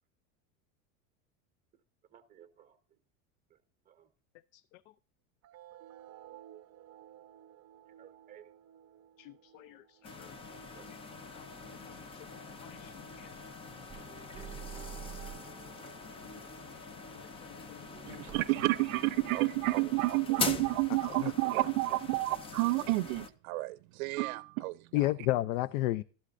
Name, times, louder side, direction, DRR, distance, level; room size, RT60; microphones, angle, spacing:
voice 1, 2.0-3.0 3.5-4.1 7.9-8.5 10.1-10.4 10.7-10.9, right 10 dB, 20° right, 1.2 m, -59 dB
sound 1, 5.4-12.4, right 11 dB, 35° right, 0.8 m, -56 dB
voice 2, 9.2-10.3 11.3-11.4 11.9-12.3 12.7-13.3 16.3-16.4 17.1-18.2 21.2-21.3 24.9-26.0, left 16 dB, 75° left, 0.5 m, -34 dB
sound 2, 10.0-23.3, left 4 dB, 15° left, 0.4 m, -43 dB
sound 3, 13.9-20.1, right 7 dB, 5° right, 2.1 m, -50 dB
voice 3, 18.0-25.1, right 20 dB, 80° right, 0.6 m, -30 dB
12.5 x 11.5 x 2.5 m
supercardioid pair, 150°, 41 cm